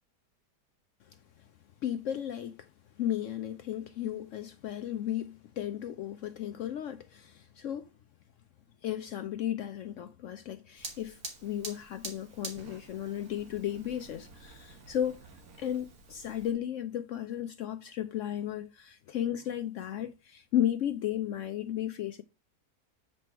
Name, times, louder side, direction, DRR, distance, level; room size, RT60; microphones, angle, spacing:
voice 1, 1.8-2.7 3.0-7.9 8.8-15.2 15.6-22.2, left 11 dB, 75° left, 0.7 m, -34 dB
Fire, 10.8-16.5, right 3 dB, 65° right, 1.8 m, -47 dB
7.7 x 4.2 x 4.4 m
omnidirectional pair, 1.8 m